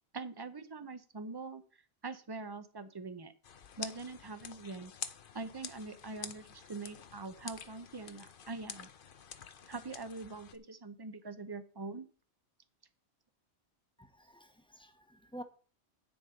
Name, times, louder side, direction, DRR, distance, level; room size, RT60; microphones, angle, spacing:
voice 1, 0.1-1.6 2.0-3.3 3.8-4.9 5.3-8.9 9.7-12.1, right 3 dB, 25° right, 0.8 m, -43 dB
sound 1, 3.4-10.6, left 7 dB, 55° left, 0.9 m, -48 dB
voice 2, 14.0-15.4, equal, 5° left, 0.9 m, -50 dB
9.2 x 7.1 x 5.1 m
omnidirectional pair, 1.2 m